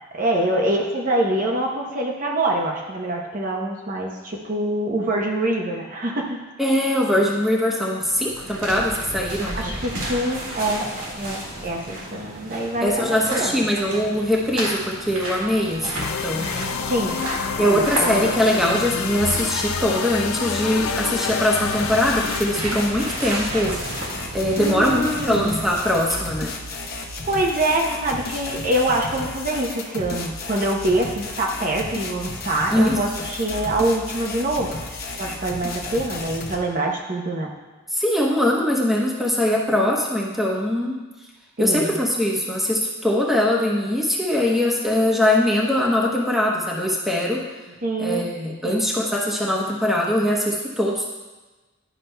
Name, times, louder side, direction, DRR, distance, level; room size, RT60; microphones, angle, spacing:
voice 1, 0.1-6.4 9.6-10.9 11.1-13.6 16.9-17.2 17.6-18.4 24.6-25.6 27.3-34.8 35.2-37.5 41.6-42.0 47.8-48.2 48.6-48.9, right 1 dB, 40° right, 0 dB, 0.7 m, -25 dB
voice 2, 6.6-9.7 12.8-16.7 17.6-23.8 24.3-26.5 32.7-33.0 37.9-41.0 41.6-47.5 48.0-51.0, left 1 dB, ahead, -4 dB, 0.9 m, -22 dB
sound 1, 7.9-26.2, right 1 dB, 80° right, 2.0 m, -33 dB
sound 2, 16.0-23.1, left 6 dB, 85° left, 0.5 m, -28 dB
sound 3, 21.8-36.6, left 2 dB, 50° left, 0.9 m, -33 dB
11.0 x 5.8 x 2.2 m, 1.2 s
head